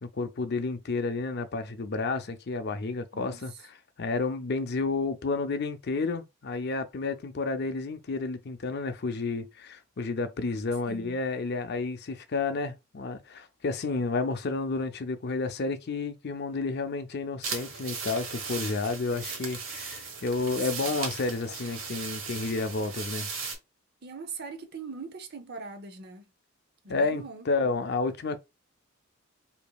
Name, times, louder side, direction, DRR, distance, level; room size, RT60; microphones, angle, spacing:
voice 1, 0.0-3.5 4.0-23.3 26.9-28.4, left 3 dB, 50° left, 0.5 m, -31 dB
voice 2, 3.1-3.6 10.9-11.2 20.2-20.9 24.0-26.3 26.8-27.5, right 4 dB, 50° right, 0.7 m, -42 dB
sound 1, 17.4-23.5, right 5 dB, 70° right, 1.3 m, -37 dB
5.0 x 2.7 x 2.3 m
head